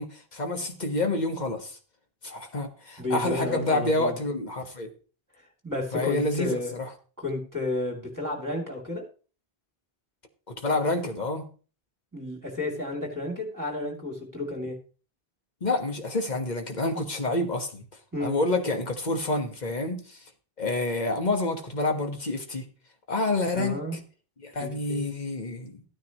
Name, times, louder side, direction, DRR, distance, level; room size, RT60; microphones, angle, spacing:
voice 1, 0.0-1.8 2.2-4.9 5.9-6.9 10.5-11.5 15.6-17.8 18.2-20.2 20.6-22.7 23.1-24.0 24.4-25.8, left 2 dB, 45° left, 1.5 m, -28 dB
voice 2, 3.0-4.2 5.6-6.7 7.2-9.0 12.1-14.8 18.1-18.4 23.5-24.0 24.6-25.0, left 2 dB, 20° right, 2.8 m, -32 dB
14.0 x 9.5 x 3.0 m
omnidirectional pair, 1.0 m